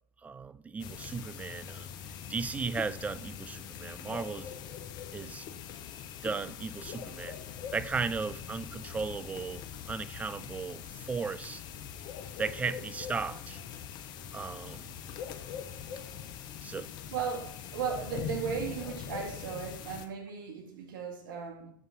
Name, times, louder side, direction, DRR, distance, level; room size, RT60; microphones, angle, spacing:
voice 1, 0.2-1.9 2.3-4.6 5.1-5.5 6.2-7.4 7.7-11.6 12.4-13.6 14.3-14.9 16.6-16.9, right 5 dB, 10° right, 0.4 m, -36 dB
sound 1, 0.8-20.1, left 8 dB, 40° left, 0.9 m, -42 dB
voice 2, 17.1-21.7, right 6 dB, 65° right, 2.0 m, -36 dB
7.0 x 6.6 x 5.5 m
hypercardioid pair, 105°, 12 cm